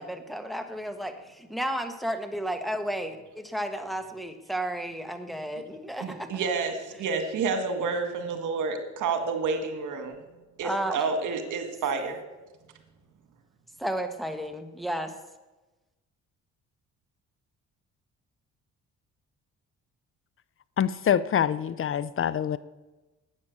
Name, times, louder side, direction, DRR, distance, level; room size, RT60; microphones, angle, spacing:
voice 1, 0.0-6.3 10.6-11.0 13.8-15.1, right 1 dB, ahead, 6 dB, 1.4 m, -33 dB
voice 2, 6.0-10.2 10.6-12.2, right 4 dB, 80° right, 7 dB, 2.0 m, -29 dB
voice 3, 20.8-22.6, left 9 dB, 45° left, 18 dB, 0.5 m, -25 dB
12.0 x 8.7 x 8.2 m, 1.1 s
cardioid pair, 90°, 30 cm